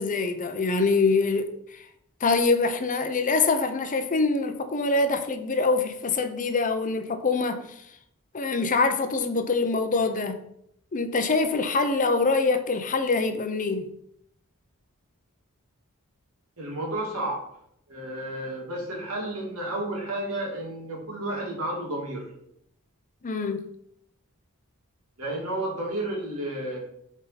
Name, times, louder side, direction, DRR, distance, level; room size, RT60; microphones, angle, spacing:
voice 1, 0.0-1.8 2.2-7.9 8.3-10.4 10.9-13.9 23.2-23.7, left 3 dB, 35° left, 0.6 m, -24 dB
voice 2, 16.6-17.4 17.9-22.3 25.2-26.8, right 1 dB, 75° right, 2.2 m, -31 dB
7.8 x 3.6 x 4.1 m
head